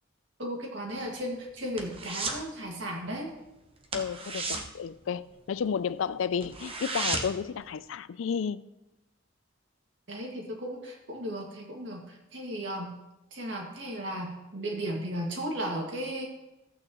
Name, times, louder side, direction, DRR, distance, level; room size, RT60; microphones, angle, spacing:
voice 1, 0.4-3.3 10.1-12.9 13.3-16.3, equal, 65° right, 2.1 m, -35 dB
sound 1, 0.9-2.5 2.8-3.1 3.3-3.5 3.8-5.7 6.1-6.2 6.4-7.5 7.9-8.0, right 3 dB, 30° right, 0.9 m, -34 dB
voice 2, 3.9-8.6, left 7 dB, 80° left, 0.4 m, -32 dB
14.0 x 8.7 x 3.1 m
head